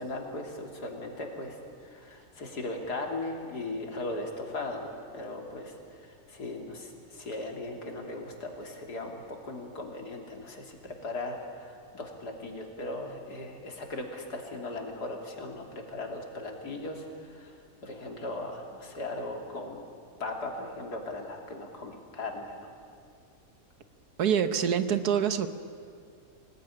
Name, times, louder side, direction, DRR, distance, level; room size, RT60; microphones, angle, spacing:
voice 1, 0.0-1.6 1.8-17.5 17.8-19.9 20.2-22.7, left 2 dB, 85° left, 2 dB, 3.5 m, -38 dB
voice 2, 24.2-25.5, right 8 dB, 75° right, 11 dB, 1.6 m, -25 dB
25.5 x 18.5 x 10.0 m, 2.3 s
omnidirectional pair, 1.7 m